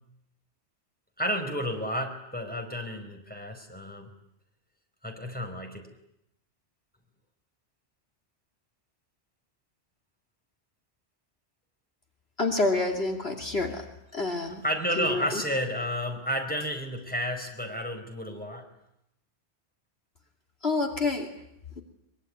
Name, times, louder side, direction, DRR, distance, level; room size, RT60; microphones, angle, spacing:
voice 1, 1.2-4.1 5.0-5.9 14.3-18.7, equal, 10° left, 3 dB, 4.9 m, -31 dB
voice 2, 12.4-13.9 14.1-14.6 15.0-15.4 20.6-21.3, left 3 dB, 65° left, 2 dB, 2.9 m, -28 dB
24.0 x 23.5 x 9.8 m, 0.80 s
omnidirectional pair, 1.2 m